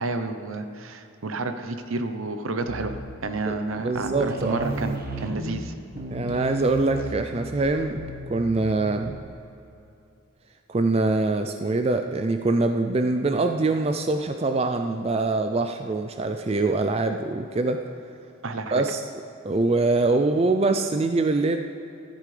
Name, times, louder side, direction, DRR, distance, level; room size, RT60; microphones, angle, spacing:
voice 1, 0.0-2.9 3.2-5.7 18.4-18.7, right 3 dB, 75° right, 8 dB, 0.8 m, -30 dB
sound 1, 2.7-3.3 3.6-3.7 4.0-9.3, right 1 dB, 45° right, 1.1 m, -34 dB
voice 2, 3.5-4.7 6.1-8.0 8.3-9.2 10.7-17.8 18.7-19.0 19.4-21.6, right 3 dB, 30° right, 7 dB, 0.4 m, -24 dB
14.5 x 13.0 x 3.3 m, 2.7 s
head